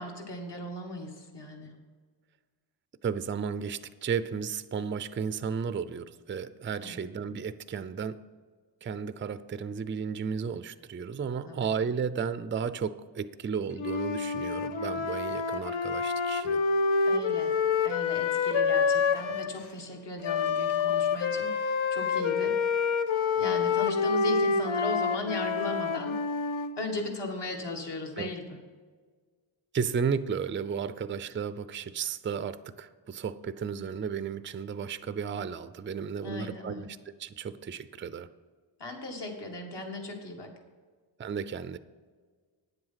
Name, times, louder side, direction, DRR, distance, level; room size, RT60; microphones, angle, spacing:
voice 1, 0.0-1.7 6.8-7.0 11.4-11.7 17.0-17.6 17.8-22.6 23.4-26.2 26.8-28.6 36.2-36.9 38.8-40.5, left 2 dB, 60° left, 2 dB, 1.9 m, -37 dB
voice 2, 3.0-8.2 8.8-16.6 28.2-28.3 29.7-36.9 37.2-38.3 41.2-41.8, right 6 dB, 25° right, 13 dB, 0.4 m, -33 dB
Wind instrument woodwind instrument, 13.8-19.5 20.2-26.7, left 5 dB, 80° left, 0.8 m, -27 dB
9.5 x 7.9 x 5.7 m, 1.5 s
wide cardioid pair, 85°, 47 cm